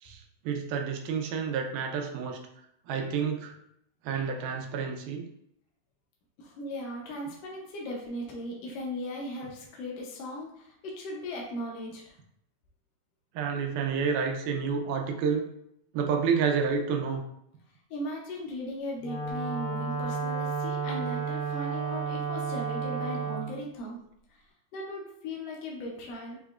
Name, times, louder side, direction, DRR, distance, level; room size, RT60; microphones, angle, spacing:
voice 1, 0.0-2.4 2.9-3.5 4.0-5.3 13.4-15.5 15.9-17.2, right 6 dB, 80° right, 3 dB, 2.1 m, -29 dB
voice 2, 6.4-12.1 17.9-24.0 24.3-24.4 24.7-26.4, left 1 dB, 80° left, -2 dB, 1.4 m, -38 dB
Wind instrument woodwind instrument, 19.0-23.5, right 5 dB, 60° left, 1.5 m, -32 dB
6.2 x 3.0 x 2.4 m, 0.75 s
omnidirectional pair, 3.8 m